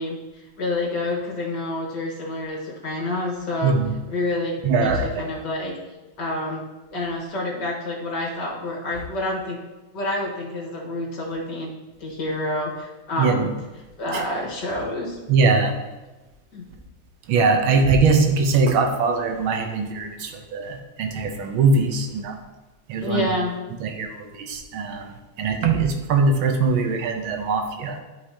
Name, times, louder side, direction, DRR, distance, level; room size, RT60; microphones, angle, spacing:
voice 1, 0.0-3.7 4.1-4.9 5.2-5.8 6.2-6.6 6.9-9.6 9.9-11.7 12.0-13.5 14.0-15.2 16.5-16.7 23.0-23.6, left 1 dB, 60° left, -3 dB, 2.0 m, -28 dB
voice 2, 3.6-3.9 4.6-5.2 13.2-13.5 14.1-14.2 15.3-15.7 17.3-22.4 22.9-23.3 23.8-28.0, right 4 dB, 80° right, 5 dB, 1.6 m, -21 dB
11.5 x 5.0 x 2.7 m, 1.1 s
omnidirectional pair, 2.2 m